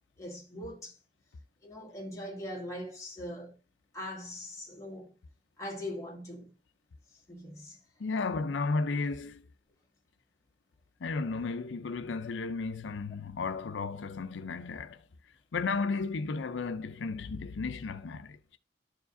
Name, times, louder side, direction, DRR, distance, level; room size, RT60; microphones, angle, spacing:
voice 1, 0.2-1.0 1.6-3.6 3.9-5.1 5.6-6.5 7.3-7.8, left 1 dB, 15° left, 1.7 m, -41 dB
voice 2, 8.0-9.4 11.0-15.0 15.5-18.6, left 4 dB, 90° left, 0.5 m, -34 dB
12.0 x 4.8 x 2.6 m
head